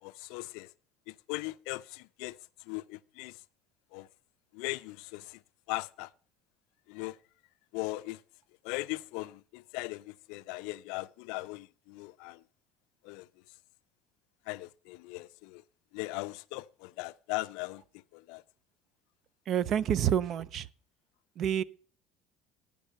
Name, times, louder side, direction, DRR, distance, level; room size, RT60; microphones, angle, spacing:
voice 1, 0.0-0.7 1.1-2.4 2.7-3.4 3.9-4.1 4.5-5.4 5.7-6.1 6.9-7.2 7.7-8.2 8.6-12.4 13.0-13.3 14.5-15.6 15.9-18.4, left 21 dB, 80° left, 0.4 m, -39 dB
voice 2, 19.5-20.7 21.4-21.6, right 9 dB, 45° right, 0.3 m, -28 dB
10.0 x 5.2 x 6.5 m
cardioid pair, 145°, 0 cm